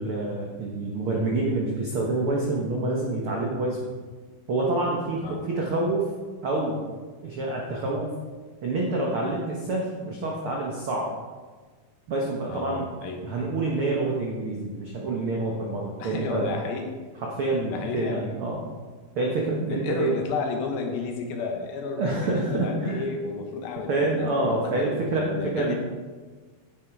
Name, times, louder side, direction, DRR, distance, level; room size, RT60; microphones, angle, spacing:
voice 1, 0.0-3.9 4.5-6.1 6.4-6.8 7.2-8.1 8.6-11.1 12.1-12.9 13.2-16.5 17.2-18.6 19.1-20.1 22.0-23.0 23.9-25.7, right 2 dB, 75° right, -2 dB, 1.2 m, -27 dB
voice 2, 12.5-13.3 16.0-16.9 17.6-18.3 19.7-25.7, left 4 dB, 75° left, 3 dB, 3.0 m, -32 dB
9.7 x 8.7 x 4.8 m, 1.4 s
omnidirectional pair, 4.3 m